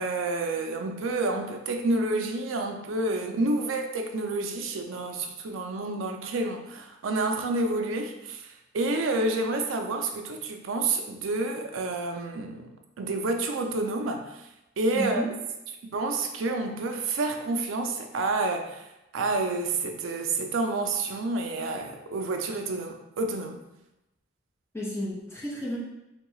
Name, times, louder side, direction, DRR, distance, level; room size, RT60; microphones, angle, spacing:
voice 1, 0.0-12.7 13.0-14.2 14.8-15.2 15.8-18.8 19.1-23.6, right 2 dB, 75° right, 4 dB, 0.4 m, -29 dB
voice 2, 14.9-15.3 24.7-25.8, equal, 15° left, -6 dB, 0.8 m, -32 dB
3.5 x 2.3 x 3.0 m, 0.92 s
head